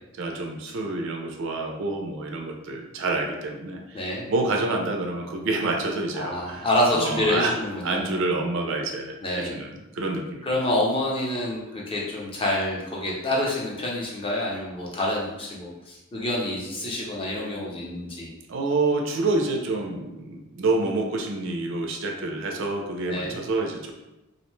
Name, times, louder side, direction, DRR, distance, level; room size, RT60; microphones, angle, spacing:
voice 1, 0.2-4.0 4.3-7.5 7.8-10.4 18.5-23.9, right 2 dB, 60° right, 2 dB, 0.4 m, -28 dB
voice 2, 6.1-8.0 9.2-9.5 10.4-18.3 23.1-23.4, left 1 dB, 25° left, -3 dB, 0.5 m, -27 dB
2.5 x 2.1 x 3.0 m, 1.0 s
head